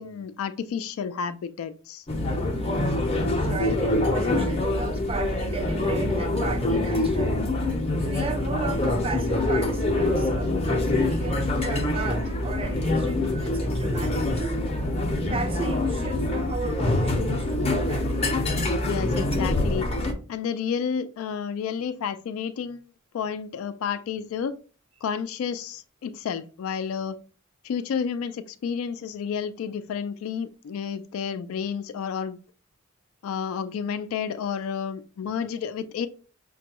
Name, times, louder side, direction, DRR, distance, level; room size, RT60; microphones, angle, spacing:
voice 1, 0.0-2.0 18.8-19.9 20.3-22.8 23.1-24.6 25.0-27.2 27.6-32.4 33.2-36.1, left 7 dB, 75° left, 0.3 m, -31 dB
sound 1, 2.1-20.1, left 1 dB, 30° left, 0.6 m, -25 dB
voice 2, 2.5-7.4 8.0-14.6 15.2-18.3, right 3 dB, 25° right, 0.4 m, -35 dB
5.9 x 2.2 x 2.9 m
head